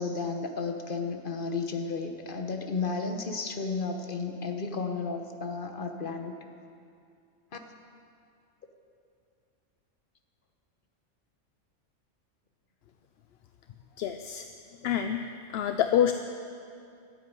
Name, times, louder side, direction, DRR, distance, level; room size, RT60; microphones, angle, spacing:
voice 1, 0.0-6.3 7.5-7.6, left 4 dB, 45° left, 5 dB, 1.2 m, -33 dB
voice 2, 14.0-14.4 14.8-15.2 15.5-16.1, left 9 dB, 65° left, 7 dB, 0.7 m, -26 dB
13.5 x 8.4 x 9.6 m, 2.5 s
omnidirectional pair, 1.3 m